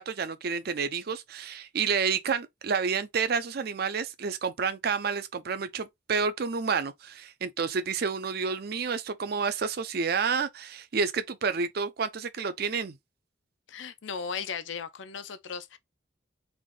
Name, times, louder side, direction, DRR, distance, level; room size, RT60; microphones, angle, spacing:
voice 1, 0.0-13.0, right 5 dB, 55° right, 0.5 m, -29 dB
voice 2, 13.7-15.8, left 6 dB, 80° left, 0.6 m, -36 dB
3.5 x 2.6 x 3.6 m
head